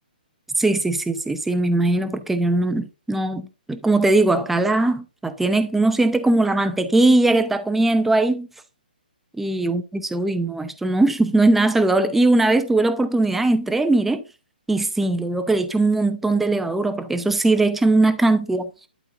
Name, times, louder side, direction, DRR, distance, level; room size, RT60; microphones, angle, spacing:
voice 1, 0.6-8.5 9.4-14.2 14.7-18.7, right 2 dB, 5° right, 0.7 m, -20 dB
11.5 x 4.1 x 3.9 m
hypercardioid pair, 155°, 5 cm